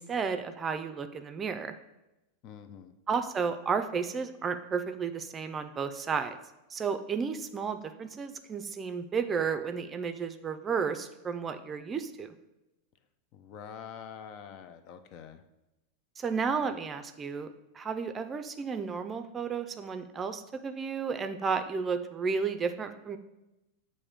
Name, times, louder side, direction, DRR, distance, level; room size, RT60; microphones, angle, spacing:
voice 1, 0.0-1.7 3.1-6.4 6.7-12.3 16.2-23.2, right 5 dB, 25° right, 8 dB, 0.5 m, -32 dB
voice 2, 2.4-2.9 13.3-15.4, left 7 dB, 50° left, 9 dB, 0.5 m, -46 dB
7.2 x 2.7 x 5.0 m, 0.95 s
hypercardioid pair, 105°, 0 cm